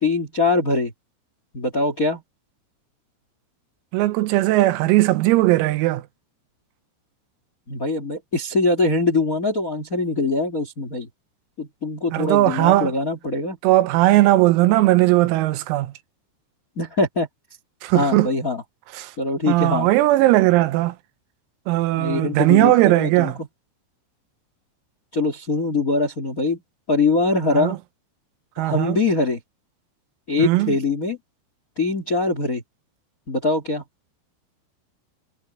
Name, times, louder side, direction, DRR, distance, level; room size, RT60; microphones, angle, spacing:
voice 1, 0.0-0.9 1.5-2.2 7.7-11.1 11.6-13.6 16.7-17.3 17.9-18.6 19.2-19.9 21.9-23.3 25.1-26.6 26.9-27.8 28.6-29.4 30.3-31.2 31.7-32.6 33.3-33.8, left 3 dB, 35° left, 1.4 m, -22 dB
voice 2, 3.9-6.1 12.1-12.9 13.6-15.9 17.8-18.3 18.9-19.1 19.5-21.0 21.7-23.4 27.5-27.8 28.6-29.0 30.4-30.8, right 17 dB, 85° right, 3.8 m, -18 dB
omnidirectional pair, 6.0 m